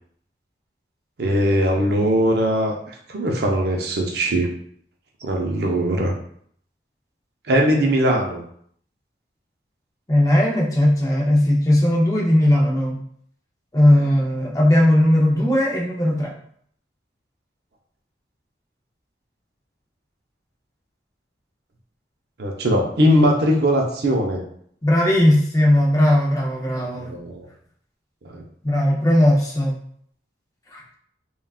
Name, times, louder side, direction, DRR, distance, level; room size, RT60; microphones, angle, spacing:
voice 1, 1.2-2.8 3.1-4.5 5.2-6.1 7.5-8.4 22.4-24.4 27.0-27.4 28.2-28.4, equal, 60° right, 1 dB, 0.5 m, -20 dB
voice 2, 10.1-13.0 13.7-16.3 24.8-27.1 28.6-29.8 30.7-30.8, left 1 dB, 20° left, -3 dB, 0.5 m, -18 dB
3.4 x 2.3 x 2.3 m, 0.63 s
head